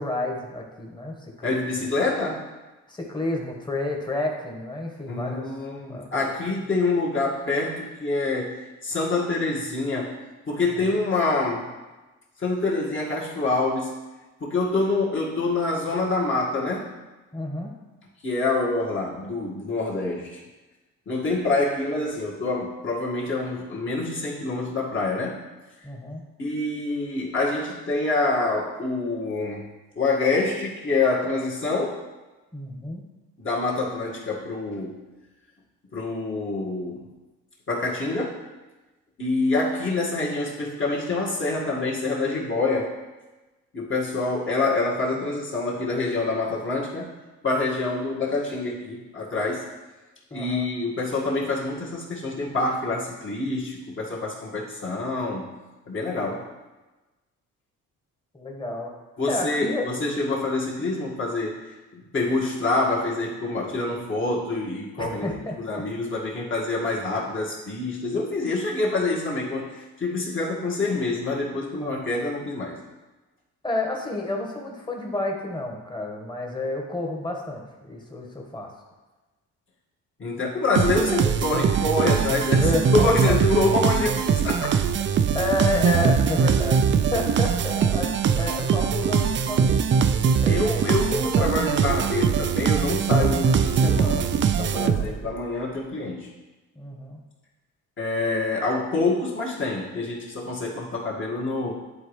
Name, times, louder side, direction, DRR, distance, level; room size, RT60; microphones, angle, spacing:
voice 1, 0.0-1.7 2.9-5.5 5.9-6.3 17.3-17.7 25.8-26.2 32.5-33.0 50.3-50.7 58.3-58.9 59.3-59.8 65.0-65.8 71.8-72.0 73.6-78.7 82.6-83.4 85.3-90.0 90.4-90.8 93.2-93.6 94.7-95.2 96.7-97.2, left 2 dB, 15° left, 0 dB, 1.4 m, -30 dB
voice 2, 1.4-2.5 5.1-8.5 8.8-10.2 10.5-11.7 12.4-14.0 14.4-16.9 18.2-20.4 21.1-25.4 26.4-29.7 30.0-32.0 33.4-35.0 35.9-37.1 37.7-38.4 39.2-42.9 43.7-47.1 47.4-49.7 50.3-55.6 55.9-56.5 59.2-72.8 80.2-85.1 90.5-96.3 98.0-101.7, left 3 dB, 40° left, -5 dB, 1.9 m, -26 dB
sound 1, 80.8-95.3, right 7 dB, 40° right, 0.4 m, -22 dB
11.0 x 4.1 x 3.2 m, 1.2 s
cardioid pair, 90°, 30 cm